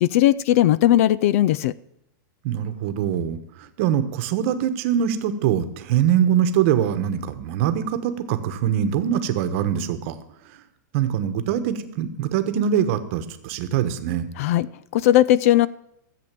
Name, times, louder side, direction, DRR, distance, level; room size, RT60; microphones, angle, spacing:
voice 1, 0.0-1.7 14.4-14.7 14.9-15.7, left 13 dB, 45° left, 20 dB, 0.4 m, -17 dB
voice 2, 2.4-3.4 3.8-10.1 10.9-14.3, right 9 dB, 40° right, 9 dB, 1.1 m, -23 dB
14.0 x 7.8 x 7.5 m, 0.79 s
supercardioid pair, 170°, 11 cm